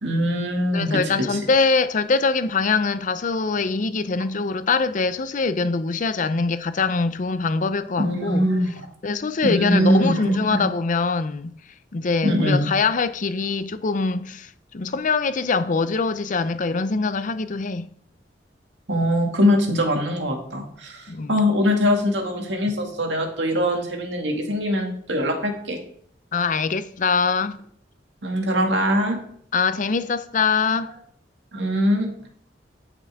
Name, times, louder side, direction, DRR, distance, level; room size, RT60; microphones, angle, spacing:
voice 1, 0.0-1.4 8.0-8.9 9.4-10.6 12.2-12.7 18.9-25.8 28.2-29.2 31.5-32.1, equal, 90° right, 2.0 m, -22 dB
voice 2, 0.7-8.4 9.0-11.5 11.9-17.9 21.1-21.3 26.3-27.6 29.5-30.9, left 4 dB, 45° left, 0.5 m, -23 dB
13.5 x 6.0 x 3.5 m
head